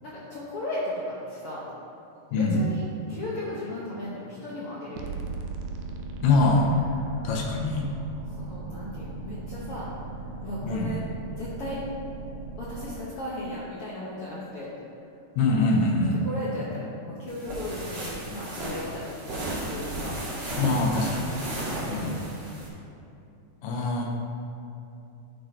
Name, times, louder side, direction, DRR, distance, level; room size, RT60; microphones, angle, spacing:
voice 1, 0.0-1.7 2.3-2.8 3.1-5.1 8.4-9.9 10.4-11.0 11.4-11.8 12.6-14.7 16.2-20.2 21.6-22.5, left 1 dB, 65° left, -8 dB, 1.5 m, -36 dB
voice 2, 2.3-2.6 6.2-6.7 7.2-7.9 10.6-10.9 15.4-16.2 20.5-21.3 21.9-22.1 23.6-24.1, left 2 dB, 85° left, 0 dB, 2.5 m, -24 dB
sound 1, 5.0-13.0, right 3 dB, 80° right, 1.9 m, -38 dB
sound 2, 17.3-22.7, right 1 dB, 45° right, 1.6 m, -34 dB
11.0 x 3.8 x 4.4 m, 2.7 s
omnidirectional pair, 3.7 m